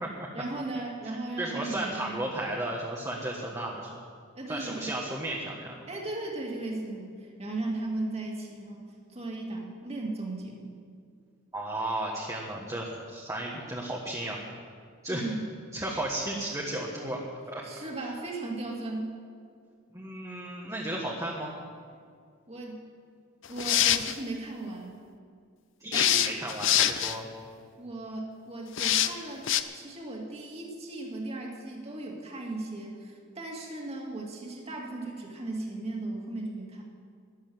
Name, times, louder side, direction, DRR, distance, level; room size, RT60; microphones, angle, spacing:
voice 1, 0.3-2.3 4.4-5.0 5.9-10.7 15.1-15.5 17.6-19.1 22.5-22.8 23.5-25.0 25.9-26.2 27.8-29.5 29.7-36.8, right 2 dB, 30° right, -1 dB, 2.3 m, -36 dB
voice 2, 1.4-3.9 4.5-5.8 11.5-14.4 15.0-15.3 15.7-17.6 19.9-21.5 25.8-27.3, right 1 dB, 15° right, -3 dB, 1.4 m, -34 dB
sound 1, 23.4-24.1 25.9-27.2 28.8-29.1 29.5-29.6, left 11 dB, 65° left, 0.6 m, -24 dB
12.5 x 11.0 x 7.8 m, 2.1 s
head